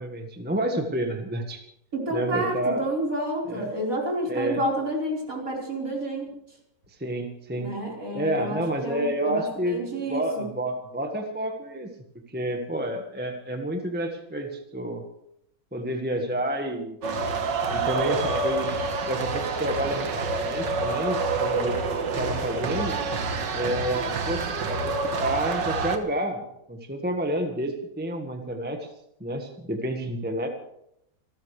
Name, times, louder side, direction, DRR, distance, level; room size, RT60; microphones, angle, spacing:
voice 1, 0.0-1.6 2.1-2.9 3.5-3.7 4.3-4.6 7.0-7.7 8.1-11.9 12.3-15.0 15.7-17.0 17.7-18.8 19.1-21.8 22.2-23.0 23.5-26.4 26.7-28.9 29.2-30.5, right 1 dB, 5° right, 4 dB, 1.3 m, -29 dB
voice 2, 1.9-6.3 7.6-10.4, right 1 dB, 50° right, -2 dB, 5.0 m, -29 dB
sound 1, 17.0-26.0, right 4 dB, 80° right, 2.1 m, -27 dB
28.0 x 13.5 x 3.3 m, 0.77 s
omnidirectional pair, 1.9 m